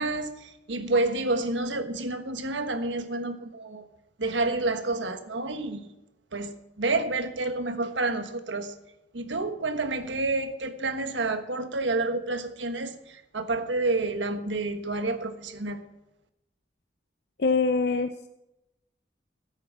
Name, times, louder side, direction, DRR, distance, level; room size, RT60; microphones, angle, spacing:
voice 1, 0.0-3.9 4.2-5.9 6.3-8.8 9.1-15.8, right 2 dB, 85° right, 1.3 m, -29 dB
voice 2, 17.4-18.3, left 4 dB, 60° left, 0.6 m, -24 dB
14.5 x 8.7 x 7.4 m
head